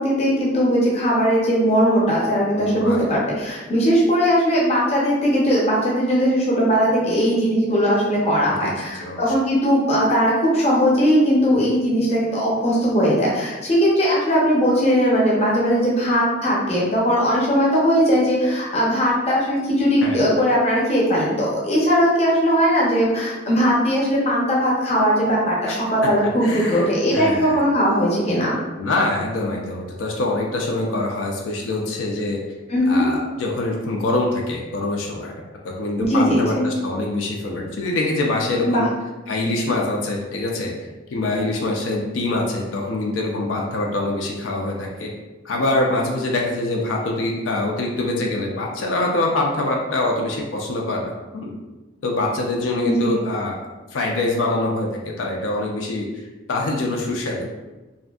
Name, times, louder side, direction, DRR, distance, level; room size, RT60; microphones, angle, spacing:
voice 1, 0.0-28.6 32.7-33.1 36.0-36.6 38.6-38.8 52.8-53.1, equal, 35° left, -5 dB, 0.6 m, -19 dB
voice 2, 2.6-3.1 8.6-9.3 20.0-20.2 25.7-25.8 26.0-26.1 26.4-27.6 28.8-32.4 32.9-38.9 39.3-45.1 45.4-51.5 52.0-53.6 53.9-56.1 56.5-57.6, left 2 dB, 90° left, 0 dB, 0.4 m, -24 dB
2.5 x 2.4 x 2.3 m, 1.2 s
head